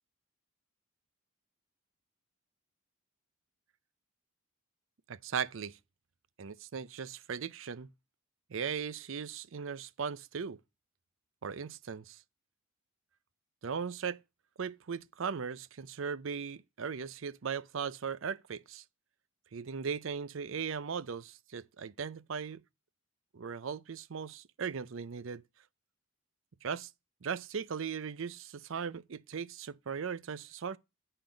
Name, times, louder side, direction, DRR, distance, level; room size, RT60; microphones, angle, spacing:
voice 1, 5.1-5.8 6.4-7.9 8.5-10.6 11.4-12.2 13.6-14.2 14.6-18.8 19.5-22.6 23.3-25.4 26.6-26.9 27.2-30.8, right 6 dB, 65° right, 0.5 m, -38 dB
8.8 x 5.8 x 5.0 m
head